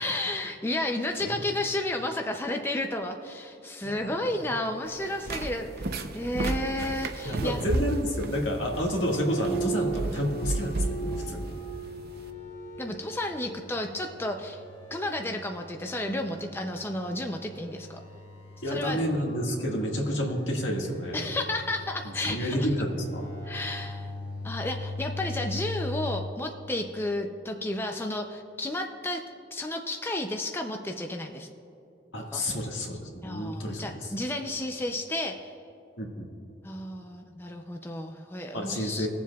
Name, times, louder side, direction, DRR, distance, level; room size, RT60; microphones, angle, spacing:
voice 1, 0.0-7.6 12.8-14.6 14.9-18.0 18.7-19.0 21.1-22.7 23.4-24.1 24.4-29.2 29.5-31.5 32.3-32.4 33.2-35.5 36.6-39.1, left 1 dB, 10° left, 4 dB, 0.4 m, -32 dB
sound 1, 4.9-12.3, right 2 dB, 55° right, 0.6 m, -33 dB
voice 2, 7.2-11.5 18.6-21.3 22.0-23.3 32.1-34.1 36.0-36.3 38.5-39.1, equal, 75° left, -1 dB, 1.7 m, -30 dB
sound 2, 8.6-26.2, right 1 dB, 40° left, 2.0 m, -39 dB
20.0 x 7.3 x 2.3 m, 2.8 s
head